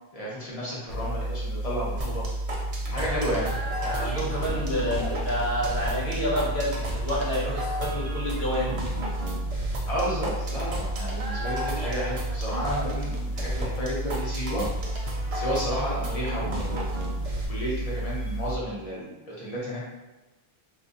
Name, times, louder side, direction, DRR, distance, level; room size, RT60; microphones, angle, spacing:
voice 1, 0.1-2.2 2.9-3.5 9.9-14.6 15.3-16.9 17.5-19.8, equal, 35° left, -6 dB, 1.0 m, -32 dB
sound 1, 0.9-18.6, right 1 dB, 55° left, 0.7 m, -32 dB
sound 2, 2.0-17.5, equal, 45° right, 0.5 m, -35 dB
voice 2, 3.8-8.8, equal, 80° left, -6 dB, 1.4 m, -29 dB
2.7 x 2.6 x 3.7 m, 1.1 s
omnidirectional pair, 1.1 m